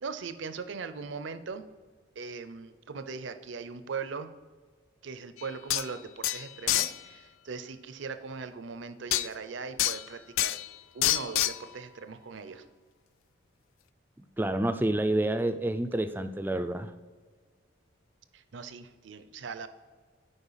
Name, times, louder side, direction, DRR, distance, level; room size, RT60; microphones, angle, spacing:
voice 1, 0.0-1.6 2.2-4.3 5.0-10.6 10.9-12.6 18.3-19.7, right 5 dB, 65° right, 10 dB, 0.5 m, -39 dB
sound 1, 5.4-5.5 5.7-5.9 6.2-7.0 9.1-9.3 9.8-10.1 10.4-10.7 11.0-11.6, left 14 dB, 80° left, 0.3 m, -27 dB
voice 2, 14.4-16.9, right 1 dB, 10° right, 10 dB, 0.3 m, -28 dB
8.0 x 5.2 x 5.6 m, 1.5 s
head